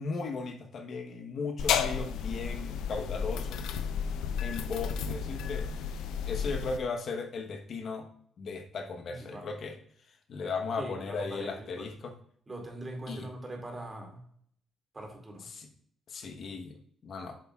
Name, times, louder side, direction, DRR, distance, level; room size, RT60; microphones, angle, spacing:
voice 1, 0.0-3.6 4.4-5.7 6.3-8.1 8.4-9.8 10.3-12.1 13.1-13.3 15.5-15.7 16.1-16.8 17.0-17.4, left 4 dB, 60° left, 5 dB, 1.1 m, -36 dB
sound 1, 1.6-6.8, left 7 dB, 85° left, 0.5 m, -32 dB
voice 2, 9.1-9.5 10.8-11.9 12.5-14.2 14.9-15.5, right 1 dB, 25° right, 2 dB, 2.3 m, -42 dB
7.9 x 7.0 x 2.4 m, 0.62 s
cardioid pair, 90°, 0 cm